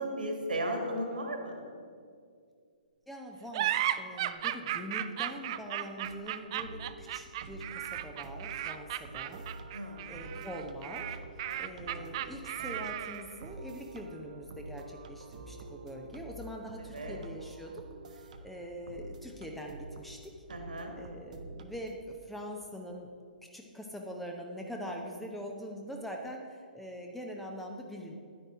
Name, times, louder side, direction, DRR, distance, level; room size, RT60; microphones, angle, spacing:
voice 1, 0.0-1.6 9.7-10.0 11.5-12.0 16.9-17.2 20.5-20.9, right 1 dB, 70° right, 2 dB, 1.9 m, -36 dB
voice 2, 3.1-9.5 9.7-11.2 11.6-17.8 18.1-20.3 20.9-23.1 23.5-28.1, equal, ahead, 1 dB, 0.6 m, -43 dB
sound 1, 3.5-13.4, right 12 dB, 35° right, 0.3 m, -35 dB
sound 2, 6.0-22.1, right 3 dB, 50° right, 0.7 m, -48 dB
10.0 x 9.9 x 3.6 m, 2.2 s
figure-of-eight pair, 125°, 5 cm